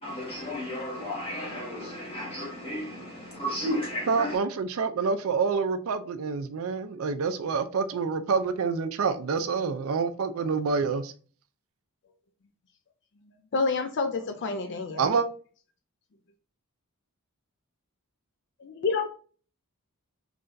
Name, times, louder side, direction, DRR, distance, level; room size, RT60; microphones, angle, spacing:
voice 1, 0.0-4.3, equal, 25° left, 1.4 m, -33 dB
voice 2, 4.1-11.1 15.0-15.3, right 5 dB, 65° right, 0.4 m, -27 dB
voice 3, 13.5-15.1 18.6-19.1, left 4 dB, 50° left, 0.4 m, -28 dB
3.8 x 3.3 x 2.5 m
head